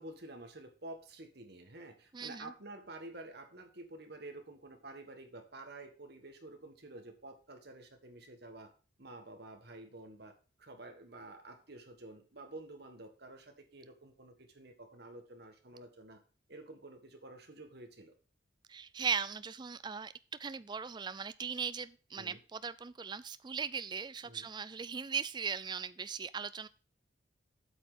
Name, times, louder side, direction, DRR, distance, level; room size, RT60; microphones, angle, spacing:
voice 1, 0.0-8.7 9.0-10.3 10.6-16.2 16.5-18.1 22.2-22.4 24.2-24.5, right 2 dB, 55° right, 5 dB, 1.6 m, -50 dB
voice 2, 2.1-2.5 18.7-20.1 20.4-26.7, right 6 dB, 20° right, 15 dB, 0.3 m, -38 dB
8.5 x 6.2 x 5.0 m, 0.36 s
head